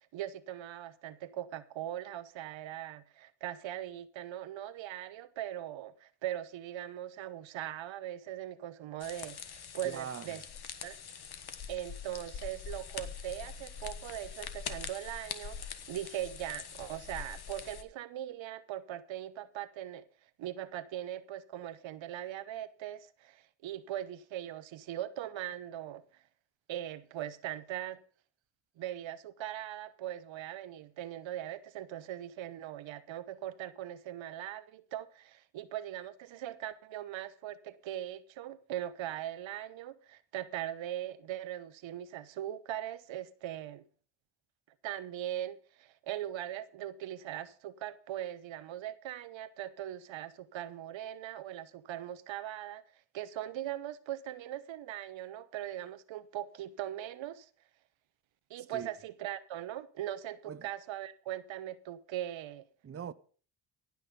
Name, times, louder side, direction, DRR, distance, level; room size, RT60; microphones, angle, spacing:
voice 1, 0.1-10.4 10.8-11.0 11.7-20.0 20.4-26.0 26.7-28.0 28.8-43.8 44.8-52.8 53.1-57.5 58.5-62.7, right 12 dB, 70° right, 0.9 m, -40 dB
sound 1, 9.0-17.8, left 7 dB, 50° left, 1.4 m, -44 dB
voice 2, 9.8-10.3 58.6-58.9 60.4-60.7 62.8-63.1, right 8 dB, 30° right, 0.7 m, -42 dB
17.5 x 6.3 x 5.2 m
supercardioid pair, 65°, 48 cm